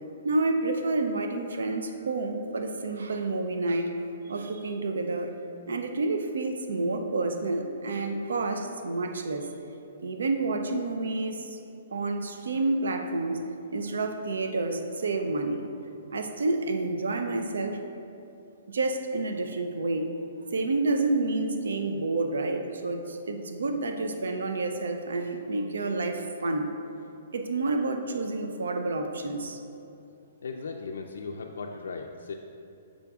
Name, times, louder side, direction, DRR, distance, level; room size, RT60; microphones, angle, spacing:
voice 1, 0.2-3.9 4.2-5.3 5.7-9.5 10.0-11.6 11.9-13.4 13.7-15.7 16.1-17.8 18.7-20.1 20.5-26.7 27.3-29.6, right 2 dB, 85° right, 5 dB, 0.5 m, -29 dB
voice 2, 30.4-32.3, left 4 dB, 85° left, 1 dB, 0.4 m, -37 dB
6.8 x 5.0 x 3.5 m, 2.6 s
hypercardioid pair, 150°, 0 cm